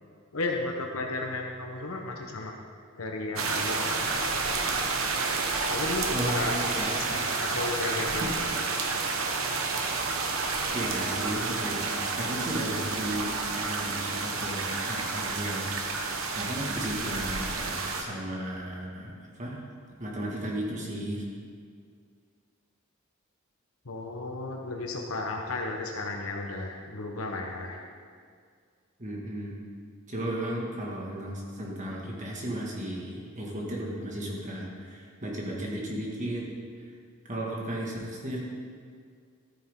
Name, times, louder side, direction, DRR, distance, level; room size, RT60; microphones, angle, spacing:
voice 1, 0.3-2.5 3.0-3.9 5.7-8.8 23.8-27.8, left 2 dB, 90° left, 1 dB, 1.1 m, -34 dB
sound 1, 3.4-18.0, right 4 dB, 75° right, 1.1 m, -30 dB
voice 2, 6.1-7.2 8.2-8.3 10.7-19.1 19.4-19.6 20.0-21.3 29.0-29.6 30.1-36.4 37.3-38.4, right 1 dB, 35° right, -3 dB, 1.9 m, -34 dB
13.5 x 9.3 x 3.8 m, 2.1 s
head